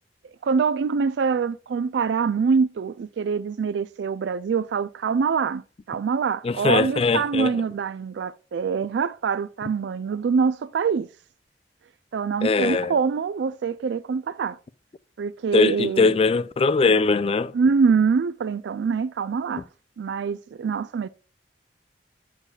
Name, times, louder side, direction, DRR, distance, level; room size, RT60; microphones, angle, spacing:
voice 1, 0.4-5.6 5.9-11.1 12.1-14.6 15.2-16.2 17.5-19.6 20.0-21.1, right 5 dB, 75° right, 0.3 m, -24 dB
voice 2, 6.4-7.5 12.4-12.9 15.5-17.5, left 4 dB, 35° left, 0.4 m, -21 dB
8.2 x 7.2 x 2.3 m
head